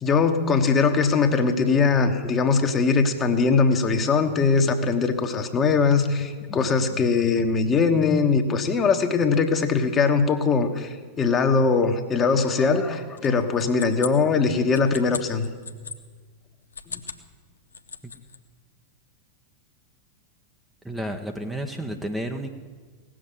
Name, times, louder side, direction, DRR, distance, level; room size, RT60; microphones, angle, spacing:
voice 1, 0.0-15.5 16.9-17.0, left 4 dB, 25° left, 6 dB, 1.4 m, -21 dB
sound 1, 13.2-16.0 16.6-17.3 17.6-18.4, left 5 dB, 75° left, 0.8 m, -37 dB
voice 2, 20.8-22.6, right 1 dB, 5° right, 3 dB, 1.0 m, -31 dB
17.5 x 7.6 x 9.7 m, 1.5 s
figure-of-eight pair, 90°, 0 cm